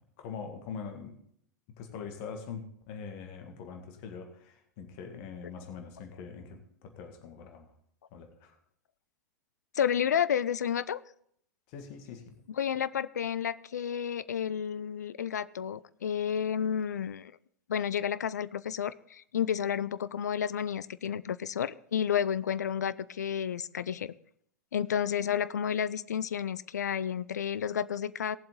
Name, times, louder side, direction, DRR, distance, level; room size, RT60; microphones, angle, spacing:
voice 1, 0.2-1.2 1.8-7.7 8.1-8.6 11.7-12.3, left 6 dB, 45° left, 5 dB, 1.9 m, -43 dB
voice 2, 9.7-11.0 12.6-17.3 17.7-24.1 24.7-28.4, left 8 dB, 70° left, 17 dB, 0.5 m, -31 dB
18.0 x 7.6 x 3.9 m, 0.67 s
figure-of-eight pair, 90°, 10 cm